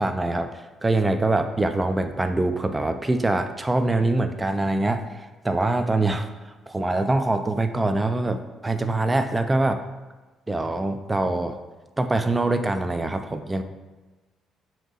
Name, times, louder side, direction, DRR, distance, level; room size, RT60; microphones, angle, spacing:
voice 1, 0.0-6.3 6.7-9.8 10.5-11.6 12.0-13.6, right 2 dB, 20° right, 8 dB, 0.3 m, -24 dB
2.9 x 2.6 x 3.9 m, 1.2 s
hypercardioid pair, 45°, 0 cm